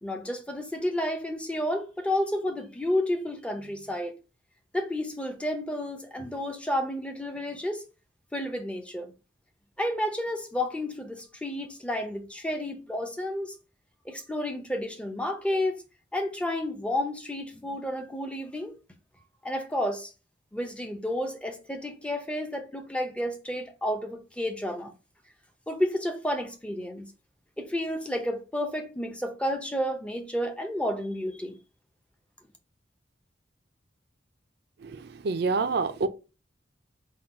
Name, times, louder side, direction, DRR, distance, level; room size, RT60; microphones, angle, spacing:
voice 1, 0.0-4.1 4.7-7.8 8.3-9.1 9.8-13.6 14.1-15.8 16.1-18.7 19.4-20.1 20.5-24.9 25.7-27.1 27.6-31.6, left 1 dB, 5° left, 0.6 m, -31 dB
voice 2, 34.8-36.1, right 4 dB, 60° right, 0.4 m, -27 dB
3.8 x 2.3 x 4.3 m
head